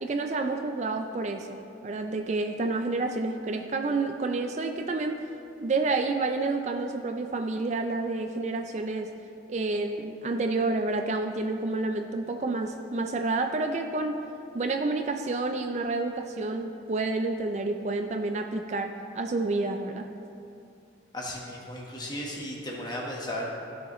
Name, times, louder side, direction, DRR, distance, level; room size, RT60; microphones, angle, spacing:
voice 1, 0.0-5.2 5.6-9.1 9.5-14.2 14.5-20.1, right 3 dB, 40° right, 5 dB, 0.4 m, -29 dB
voice 2, 21.1-23.6, left 1 dB, 20° left, -2 dB, 1.2 m, -35 dB
15.0 x 6.2 x 3.0 m, 2.6 s
head